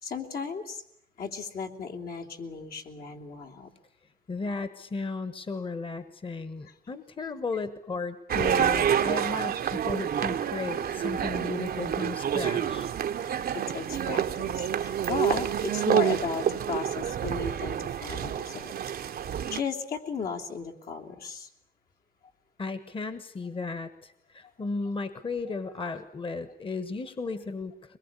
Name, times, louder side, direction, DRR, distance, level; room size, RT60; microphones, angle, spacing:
voice 1, 0.0-0.8 1.2-3.7 7.2-7.3 13.5-18.7 19.5-21.5, left 5 dB, 75° left, 0 dB, 3.0 m, -35 dB
voice 2, 4.3-12.9 22.6-28.0, left 4 dB, 35° left, 12 dB, 1.3 m, -35 dB
sound 1, 8.3-19.6, right 9 dB, 80° right, 1.0 m, -28 dB
23.0 x 21.5 x 9.7 m, 0.73 s
wide cardioid pair, 135°, 16 cm